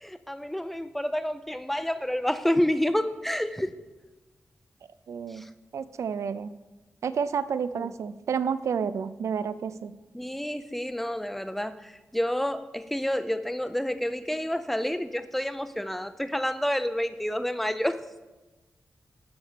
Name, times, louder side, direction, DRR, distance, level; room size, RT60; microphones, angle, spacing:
voice 1, 0.0-3.7 5.3-5.5 7.8-7.9 10.1-18.0, equal, 5° left, 0.5 m, -29 dB
voice 2, 5.1-5.5 5.7-6.5 7.0-9.9, right 6 dB, 70° right, 0.5 m, -30 dB
11.0 x 4.2 x 6.8 m
wide cardioid pair, 105°, 5 cm